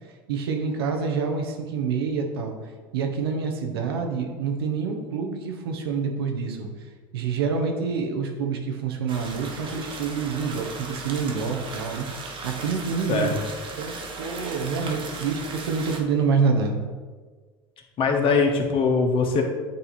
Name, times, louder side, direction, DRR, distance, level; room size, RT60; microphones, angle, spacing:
voice 1, 0.0-2.6 2.9-13.4 13.8-16.8, right 5 dB, 85° right, 3 dB, 0.8 m, -27 dB
sound 1, 9.1-16.0, right 3 dB, 40° right, 1.0 m, -37 dB
voice 2, 18.0-19.4, left 4 dB, 45° left, 3 dB, 1.1 m, -21 dB
8.3 x 2.8 x 4.1 m, 1.4 s
hypercardioid pair, 90°, 12 cm